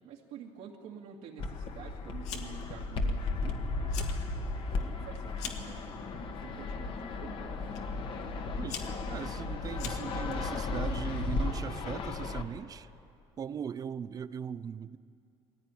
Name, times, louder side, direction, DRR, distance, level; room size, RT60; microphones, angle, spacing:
voice 1, 0.0-4.0 4.5-5.8 6.3-7.5, right 7 dB, 85° right, -2 dB, 2.3 m, -48 dB
Fixed-wing aircraft airplane, 1.4-12.4, left 3 dB, 45° left, 1.6 m, -35 dB
Fire, 2.2-2.7 3.0-3.5 3.8-4.2 4.6-5.7 6.5-6.9 7.7-7.8 8.4-10.3, left 7 dB, 75° left, 2.1 m, -42 dB
voice 2, 8.6-12.9 13.4-15.0, right 7 dB, 30° right, 17 dB, 0.5 m, -39 dB
21.5 x 16.0 x 9.9 m, 2.6 s
cardioid pair, 145°, 12 cm